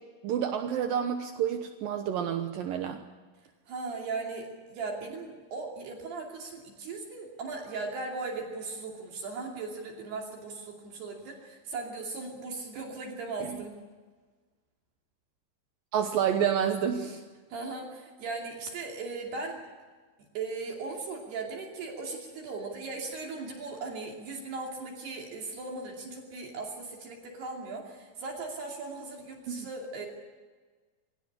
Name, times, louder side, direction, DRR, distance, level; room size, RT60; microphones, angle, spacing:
voice 1, 0.2-3.0 13.4-13.5 15.9-17.2 29.5-29.7, right 8 dB, 80° right, 6 dB, 2.1 m, -29 dB
voice 2, 3.7-13.7 17.5-19.6 20.3-30.1, right 3 dB, 60° right, 0 dB, 4.4 m, -38 dB
24.5 x 17.5 x 9.9 m, 1.4 s
omnidirectional pair, 5.6 m